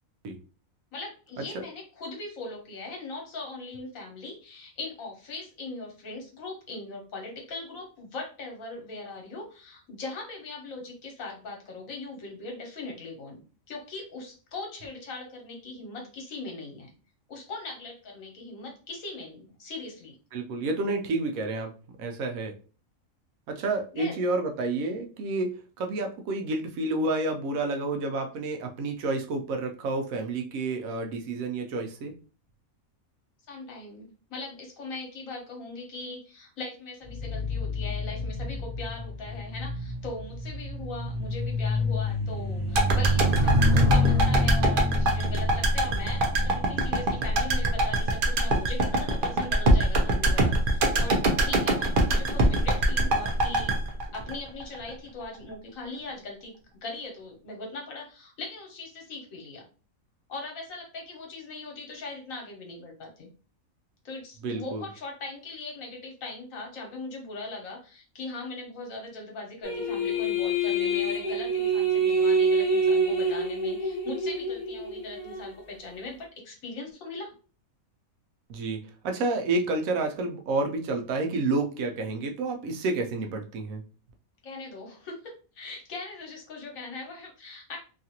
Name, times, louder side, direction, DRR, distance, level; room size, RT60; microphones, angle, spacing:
voice 1, 0.9-13.4 13.7-16.9 17.3-20.2 23.9-24.2 33.5-53.7 54.1-56.5 56.8-59.7 60.3-63.3 64.0-77.3 84.4-87.8, left 3 dB, 75° left, 1 dB, 1.3 m, -40 dB
voice 2, 20.3-21.7 22.0-22.5 23.5-25.5 25.8-32.1 64.4-64.8 78.5-83.8, right 2 dB, 80° right, 4 dB, 1.0 m, -29 dB
sound 1, 37.0-48.7 49.4-49.7, left 1 dB, 25° right, 1.0 m, -28 dB
sound 2, 42.7-54.9 55.2-55.3, right 1 dB, 55° right, 0.6 m, -23 dB
sound 3, 69.6-75.5, right 2 dB, 45° left, 0.7 m, -26 dB
2.9 x 2.4 x 2.8 m, 0.36 s
omnidirectional pair, 1.4 m